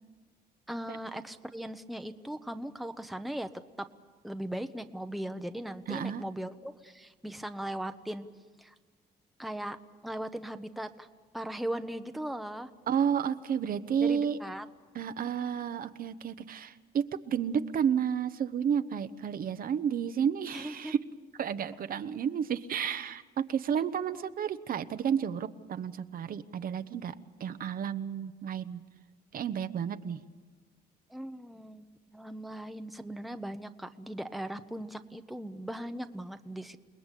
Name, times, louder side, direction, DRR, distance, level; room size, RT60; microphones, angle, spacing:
voice 1, 0.7-3.5 3.8-3.9 4.2-8.3 8.6-8.7 9.4-9.8 10.0-11.1 11.3-12.7 14.0-14.7 20.5-20.9 22.7-22.9 23.8-23.9 24.1-24.3 31.1-36.8, right 1 dB, ahead, 8 dB, 0.9 m, -38 dB
voice 2, 5.9-6.2 12.9-14.4 14.9-21.0 21.4-27.1 27.4-28.8 29.3-30.2, right 8 dB, 60° right, 11 dB, 0.9 m, -31 dB
29.0 x 20.0 x 8.3 m, 1.4 s
cardioid pair, 125°, 17 cm